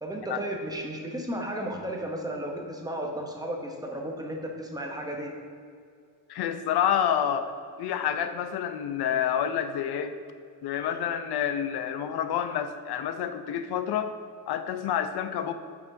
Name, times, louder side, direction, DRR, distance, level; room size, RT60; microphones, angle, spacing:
voice 1, 0.0-5.3, right 1 dB, 10° right, 1 dB, 0.7 m, -34 dB
voice 2, 6.3-7.5 7.8-10.2 10.6-14.1 14.5-15.5, left 9 dB, 65° left, 9 dB, 0.6 m, -28 dB
9.2 x 6.1 x 2.6 m, 2.3 s
cardioid pair, 140°, 41 cm